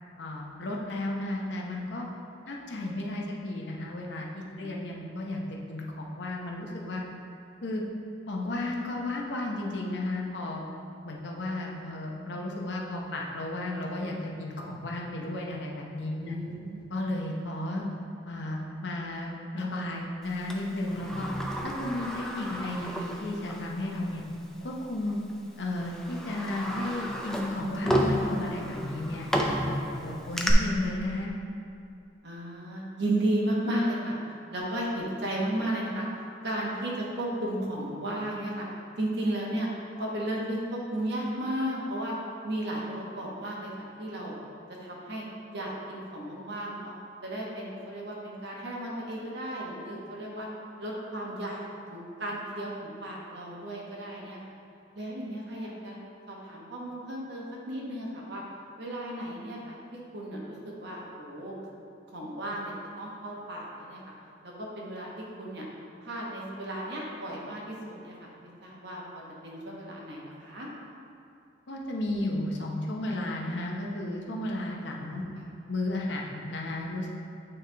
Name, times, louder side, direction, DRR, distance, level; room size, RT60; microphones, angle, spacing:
voice 1, 0.2-2.1 2.5-5.4 5.7-7.0 7.6-7.8 8.3-10.6 11.0-16.3 16.9-17.9 18.3-21.3 21.6-24.2 24.6-25.2 25.6-29.3 29.7-31.3 71.7-75.2 75.7-77.1, left 1 dB, 65° left, -1 dB, 0.7 m, -33 dB
voice 2, 4.6-5.3 11.5-11.6 16.1-16.9 30.0-30.2 32.2-34.2 34.5-36.1 36.4-38.7 39.0-39.7 40.0-42.2 42.4-44.4 44.8-45.2 45.5-46.9 47.2-50.5 50.8-51.6 51.9-54.5 54.9-56.0 56.3-58.4 58.8-61.5 62.1-64.0 64.4-65.6 66.0-70.7 75.3-75.4, right 1 dB, 60° right, -3 dB, 1.1 m, -34 dB
Sliding door, 20.5-23.7 24.1-24.2 25.1-25.3 25.8-30.5, equal, 5° left, 0.4 m, -32 dB
8.8 x 3.3 x 3.3 m, 2.5 s
head